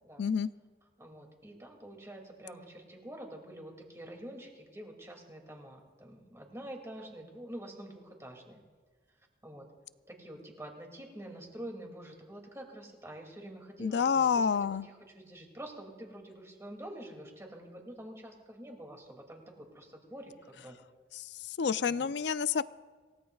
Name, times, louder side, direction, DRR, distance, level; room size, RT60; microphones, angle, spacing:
voice 1, 0.2-0.5 13.8-14.9 21.2-21.3 21.6-22.6, left 6 dB, 70° left, 15 dB, 0.4 m, -28 dB
voice 2, 1.0-8.6 9.4-9.7 10.1-14.5 14.8-20.8 21.8-22.1, right 1 dB, 15° right, 1 dB, 2.4 m, -47 dB
27.5 x 17.0 x 2.4 m, 1.4 s
head